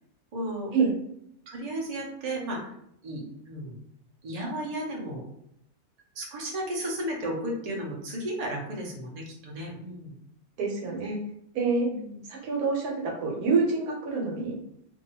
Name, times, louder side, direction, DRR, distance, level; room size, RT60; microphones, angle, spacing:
voice 1, 0.3-0.7 1.5-2.7 3.0-3.8 4.2-5.2 6.1-10.1 11.8-12.2, right 1 dB, 55° right, -2 dB, 0.4 m, -34 dB
voice 2, 10.6-11.2 11.5-11.9 12.3-14.6, right 4 dB, 75° right, -1 dB, 1.2 m, -26 dB
2.6 x 2.3 x 2.7 m, 0.74 s
omnidirectional pair, 1.7 m